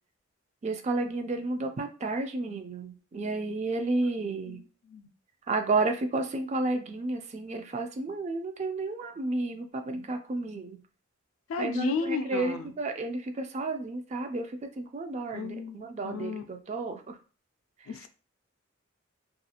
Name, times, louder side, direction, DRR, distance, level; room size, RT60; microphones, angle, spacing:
voice 1, 0.6-4.6 5.5-10.8 11.6-14.5 14.8-17.2, right 3 dB, 35° right, 6 dB, 0.3 m, -31 dB
voice 2, 4.5-5.1 9.9-10.1 11.5-12.7 15.3-15.8 16.0-16.4 17.9-18.1, left 4 dB, 85° left, 9 dB, 0.3 m, -33 dB
2.4 x 2.4 x 2.8 m, 0.37 s
head